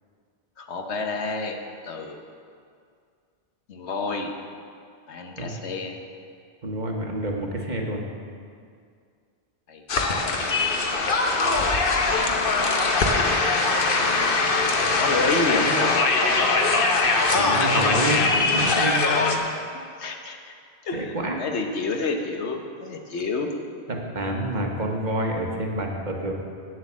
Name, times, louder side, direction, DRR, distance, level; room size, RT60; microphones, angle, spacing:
voice 1, 0.6-1.6 1.8-2.2 3.7-4.3 5.1-6.0 9.7-9.8 10.3-10.7 12.4-12.8 15.0-16.1 19.7-20.5 20.8-23.5, left 3 dB, 85° left, 3 dB, 1.3 m, -29 dB
voice 2, 6.6-8.0 17.3-19.4 20.9-21.4 23.9-26.3, right 1 dB, 45° right, 0 dB, 1.3 m, -28 dB
sound 1, 9.9-19.4, left 3 dB, 55° left, 1.1 m, -21 dB
9.0 x 7.7 x 7.2 m, 2.2 s
omnidirectional pair, 1.1 m